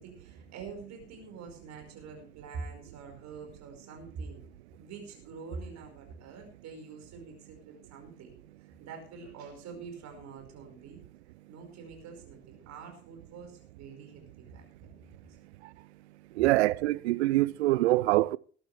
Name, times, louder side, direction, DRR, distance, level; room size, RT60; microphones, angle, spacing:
voice 1, 0.0-4.4 4.8-8.3 8.6-11.0 11.5-15.0, right 5 dB, 50° right, 5.2 m, -45 dB
voice 2, 16.4-18.4, right 18 dB, 70° right, 0.5 m, -24 dB
19.5 x 11.5 x 3.4 m
figure-of-eight pair, 55°, 35 cm